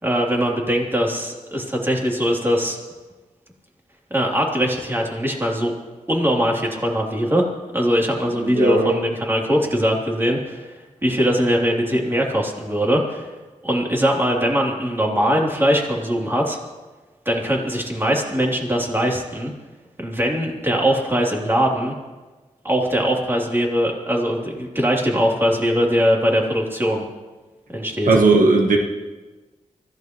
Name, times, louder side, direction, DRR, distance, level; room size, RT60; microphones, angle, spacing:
voice 1, 0.0-2.8 4.1-5.7 6.1-7.4 7.7-10.7 11.0-13.3 13.6-16.6 17.2-19.5 20.0-21.9 22.6-27.0 27.7-28.1, equal, 15° right, -2 dB, 3.2 m, -21 dB
voice 2, 8.4-9.0 28.1-28.8, right 3 dB, 85° right, 1 dB, 1.4 m, -16 dB
24.0 x 15.5 x 3.1 m, 1.2 s
wide cardioid pair, 75°, 13 cm